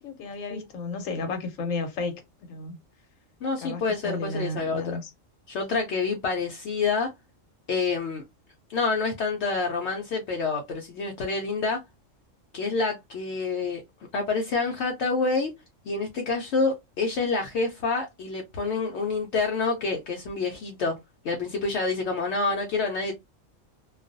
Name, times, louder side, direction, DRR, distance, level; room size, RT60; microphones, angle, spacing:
voice 1, 0.0-2.2 2.5-2.8 3.6-5.1, left 3 dB, 90° left, 1.1 m, -33 dB
voice 2, 3.4-5.0 5.5-7.1 7.7-8.2 8.7-11.8 12.5-13.8 14.1-15.5 15.9-20.9 21.2-23.1, left 4 dB, 65° left, 0.8 m, -27 dB
2.4 x 2.2 x 2.5 m
omnidirectional pair, 1.3 m